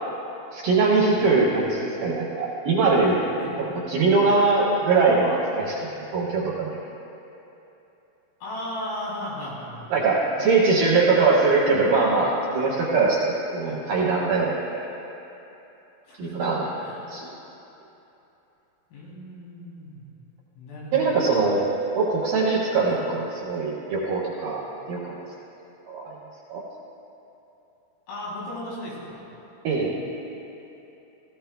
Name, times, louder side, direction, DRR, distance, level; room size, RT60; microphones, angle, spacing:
voice 1, 0.5-3.2 3.6-6.8 9.9-14.9 16.2-16.7 17.1-17.3 20.9-21.6 22.0-24.6 24.9-25.0 25.9-26.2 26.5-26.6 29.6-30.0, right 3 dB, 65° right, -5 dB, 2.4 m, -22 dB
voice 2, 8.4-9.9 13.6-13.8 16.0-16.5 16.8-17.1 18.9-20.0 20.6-21.1 22.8-23.0 28.1-29.2, left 1 dB, 80° left, -7 dB, 6.1 m, -36 dB
17.5 x 15.0 x 2.3 m, 3.0 s
omnidirectional pair, 5.8 m